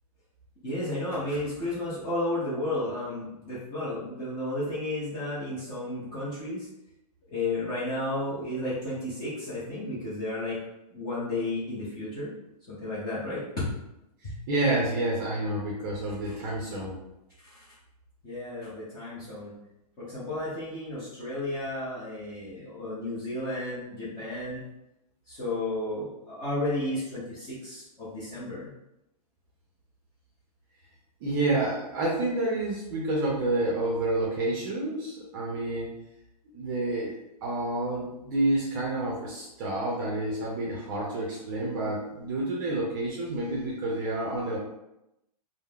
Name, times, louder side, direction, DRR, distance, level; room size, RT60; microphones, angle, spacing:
voice 1, 0.6-6.7 7.3-10.6 10.9-12.3 12.7-13.7 14.2-14.3 16.2-16.4 18.2-19.5 20.0-24.6 25.3-28.7, left 1 dB, 20° left, -10 dB, 0.7 m, -33 dB
voice 2, 14.2-17.0 31.2-35.9 36.5-37.1 37.4-44.6, right 2 dB, 35° right, -3 dB, 0.5 m, -29 dB
3.5 x 2.0 x 2.2 m, 0.88 s
hypercardioid pair, 150°, 20 cm